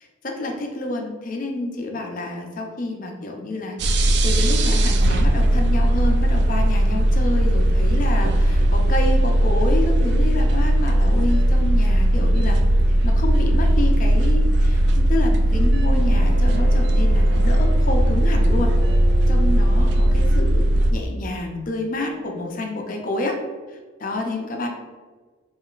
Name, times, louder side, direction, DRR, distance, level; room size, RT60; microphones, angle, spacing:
voice 1, 0.2-12.6 12.9-18.7 19.3-23.4 23.7-24.7, left 2 dB, 40° left, 2 dB, 0.5 m, -29 dB
sound 1, 3.8-20.9, right 1 dB, 55° right, 0.3 m, -18 dB
Bowed string instrument, 15.7-20.6, left 1 dB, 75° right, 0.7 m, -36 dB
4.7 x 3.1 x 2.4 m, 1.4 s
head